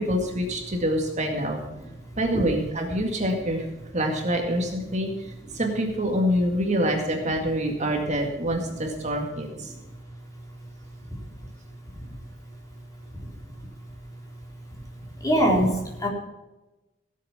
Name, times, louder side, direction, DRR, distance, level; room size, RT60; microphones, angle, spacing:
voice 1, 0.0-1.6 2.2-3.7 3.9-5.1 5.5-9.7, equal, 40° right, 2 dB, 2.1 m, -26 dB
voice 2, 15.2-16.1, equal, 20° left, -1 dB, 3.6 m, -22 dB
17.0 x 7.5 x 5.9 m, 1.1 s
head